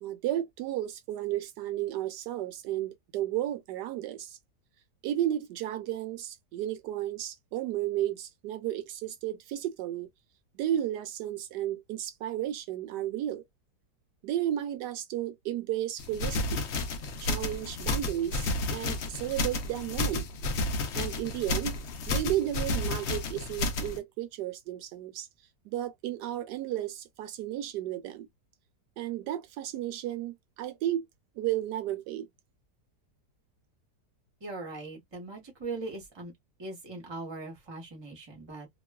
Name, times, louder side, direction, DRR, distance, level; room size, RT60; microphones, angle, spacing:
voice 1, 0.0-4.4 5.0-10.1 10.5-13.4 14.2-16.7 17.2-20.3 20.9-21.8 22.1-25.3 25.7-28.3 29.0-31.1 31.4-32.3, right 12 dB, 75° right, 1.1 m, -33 dB
sound 1, 16.0-24.0, left 2 dB, 90° left, 0.6 m, -31 dB
voice 2, 34.4-36.3 36.6-38.7, right 3 dB, 25° right, 0.6 m, -40 dB
2.9 x 2.2 x 2.2 m
omnidirectional pair, 1.9 m